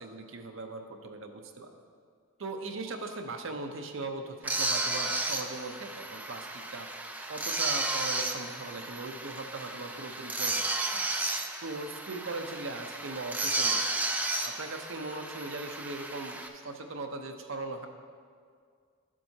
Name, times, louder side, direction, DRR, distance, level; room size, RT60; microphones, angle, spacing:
voice 1, 0.0-1.7 2.4-6.9 7.3-11.0 11.6-14.0 14.4-17.9, right 3 dB, 60° right, 4 dB, 0.7 m, -39 dB
sound 1, 4.4-16.5, right 2 dB, 5° right, 0.4 m, -33 dB
12.0 x 7.4 x 2.8 m, 2.1 s
head